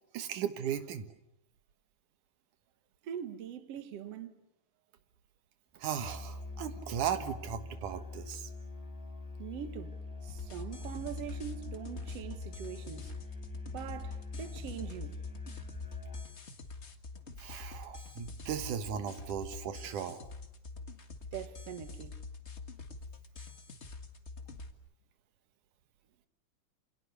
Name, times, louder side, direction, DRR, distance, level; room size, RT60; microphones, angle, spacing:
voice 1, 0.1-1.1 5.8-8.5 17.4-20.2, right 8 dB, 85° right, 3.0 m, -37 dB
voice 2, 3.0-4.4 9.4-13.1 13.7-15.2 21.3-22.2, right 9 dB, 60° right, 2.4 m, -43 dB
Musical instrument, 6.0-16.3, left 2 dB, 5° left, 5.3 m, -43 dB
sound 1, 10.3-24.7, left 3 dB, 30° left, 1.4 m, -46 dB
28.5 x 27.5 x 6.8 m
omnidirectional pair, 3.5 m